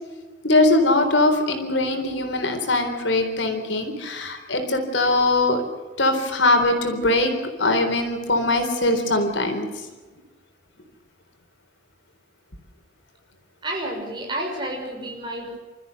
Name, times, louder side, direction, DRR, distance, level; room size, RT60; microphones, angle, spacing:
voice 1, 0.4-5.6 6.0-7.3 7.6-9.7, left 2 dB, 85° left, 6 dB, 3.9 m, -21 dB
voice 2, 13.6-15.6, right 1 dB, 25° right, 0 dB, 6.6 m, -30 dB
28.0 x 14.0 x 8.1 m, 1.3 s
head